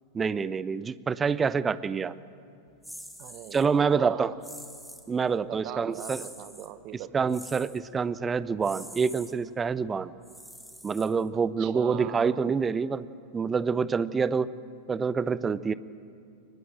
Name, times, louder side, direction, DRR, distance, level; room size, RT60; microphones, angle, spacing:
voice 1, 0.1-2.1 3.5-4.4 5.1-6.2 7.1-10.1 10.8-13.1 13.3-14.5 14.9-15.7, right 5 dB, 15° right, 17 dB, 0.6 m, -27 dB
sound 1, 2.8-3.7 4.4-5.1 5.9-6.7 7.3-7.8 8.6-9.3 10.2-11.4, equal, ahead, 1.9 m, -45 dB
voice 2, 3.2-4.4 5.5-7.1 11.3-12.5, right 14 dB, 40° right, 14 dB, 1.0 m, -42 dB
23.5 x 20.0 x 8.8 m, 2.5 s
figure-of-eight pair, 90°, 0 cm